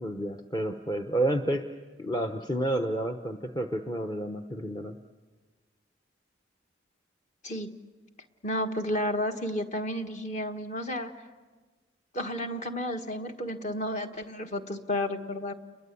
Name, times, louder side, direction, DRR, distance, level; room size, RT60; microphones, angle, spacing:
voice 1, 0.0-1.6 2.0-5.0, right 1 dB, 20° left, 4 dB, 0.9 m, -30 dB
voice 2, 7.4-7.7 8.4-11.1 12.1-15.5, left 1 dB, 40° left, 5 dB, 1.5 m, -32 dB
30.0 x 22.0 x 8.4 m, 1.4 s
head